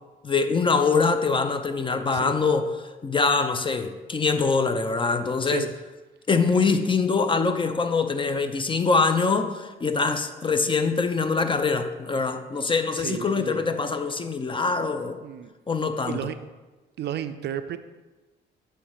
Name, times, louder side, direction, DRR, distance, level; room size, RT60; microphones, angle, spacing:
voice 1, 0.2-5.7 6.3-15.2 15.7-16.2, left 4 dB, 25° left, 9 dB, 0.5 m, -24 dB
voice 2, 12.9-13.6 15.2-15.5 16.1-16.3 17.0-17.8, right 10 dB, 60° right, 11 dB, 0.4 m, -32 dB
7.9 x 3.2 x 4.9 m, 1.2 s
cardioid pair, 90°, 20 cm